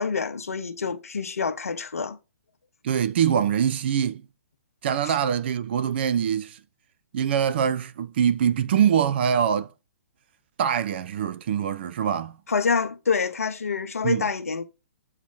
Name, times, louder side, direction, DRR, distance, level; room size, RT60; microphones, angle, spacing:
voice 1, 0.0-2.2 5.0-5.2 12.5-14.6, left 5 dB, 70° left, 0.9 m, -27 dB
voice 2, 2.8-4.2 4.8-6.6 7.1-9.7 10.6-12.4 14.0-14.3, right 8 dB, 45° right, 0.6 m, -23 dB
7.5 x 3.1 x 6.0 m
figure-of-eight pair, 125°, 8 cm